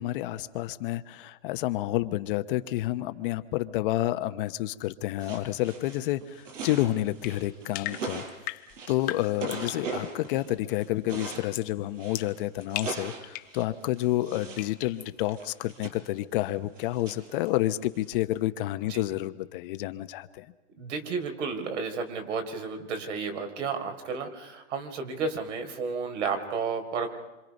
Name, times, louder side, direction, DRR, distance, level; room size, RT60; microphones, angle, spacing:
voice 1, 0.0-8.2 8.9-20.5, left 15 dB, 45° left, 11 dB, 1.0 m, -29 dB
sound 1, 5.2-11.5 12.0-14.7 15.0-18.2, right 4 dB, 85° right, 5.2 m, -40 dB
sound 2, 7.2-9.9 11.5-11.8 12.1-13.6 14.6-15.1, left 16 dB, 25° left, 0.7 m, -38 dB
voice 2, 20.8-27.1, right 5 dB, 70° right, 6 dB, 4.0 m, -32 dB
26.5 x 26.5 x 5.3 m, 1.1 s
hypercardioid pair, 150°, 37 cm